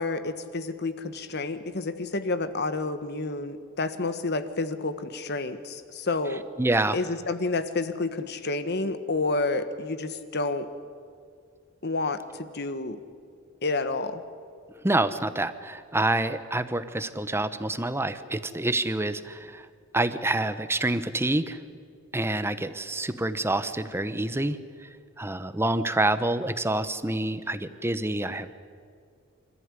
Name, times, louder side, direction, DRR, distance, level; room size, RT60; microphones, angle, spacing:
voice 1, 0.0-6.4 6.9-10.7 11.8-13.0 13.6-14.2, left 3 dB, 55° left, 11 dB, 1.4 m, -29 dB
voice 2, 6.6-7.0 14.8-19.7 19.9-21.6 22.1-24.9 25.2-28.5, right 2 dB, 10° right, 12 dB, 0.9 m, -27 dB
27.0 x 14.5 x 9.8 m, 2.3 s
head